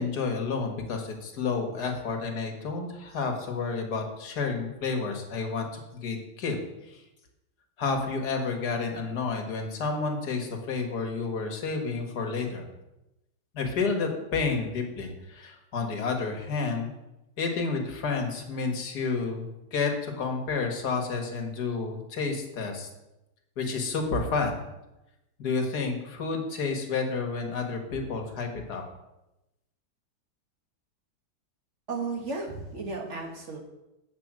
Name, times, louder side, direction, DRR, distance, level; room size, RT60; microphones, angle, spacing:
voice 1, 0.0-6.6 6.8-7.0 7.8-12.7 13.5-16.9 17.4-22.9 23.6-24.6 25.4-28.8, left 4 dB, 55° left, 3 dB, 1.9 m, -30 dB
voice 2, 31.9-33.6, right 3 dB, 40° right, 2 dB, 1.6 m, -34 dB
7.7 x 5.6 x 7.4 m, 0.95 s
omnidirectional pair, 2.2 m